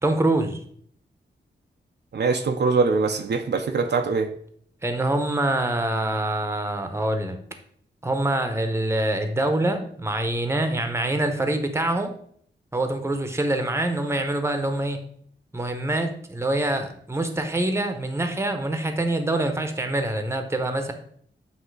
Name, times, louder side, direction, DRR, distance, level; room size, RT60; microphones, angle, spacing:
voice 1, 0.0-0.6 4.8-7.4 8.0-12.1 12.7-15.0 15.5-20.9, right 1 dB, 15° right, 0.9 m, -25 dB
voice 2, 2.1-4.3, right 4 dB, 60° right, 0.6 m, -23 dB
7.9 x 2.8 x 4.8 m
wide cardioid pair, 90°, 20 cm